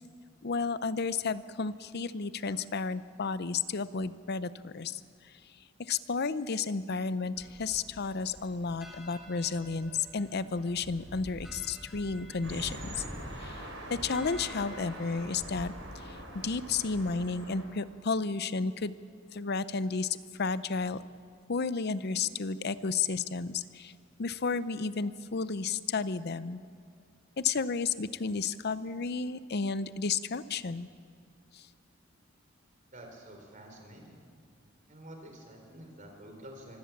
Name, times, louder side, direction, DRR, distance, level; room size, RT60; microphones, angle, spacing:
voice 1, 0.4-5.0 5.9-12.8 13.4-13.5 13.9-15.7 16.3-18.9 19.3-20.1 20.4-21.0 21.5-23.9 24.2-26.6 27.4-30.9, left 4 dB, 55° left, 15 dB, 0.7 m, -32 dB
sound 1, 7.4-17.3, equal, ahead, 2.7 m, -47 dB
sound 2, 12.4-17.6, right 1 dB, 75° right, 5.2 m, -45 dB
voice 2, 32.9-34.2 34.9-36.8, right 1 dB, 40° right, 2 dB, 4.1 m, -49 dB
25.0 x 16.0 x 7.3 m, 2.2 s
head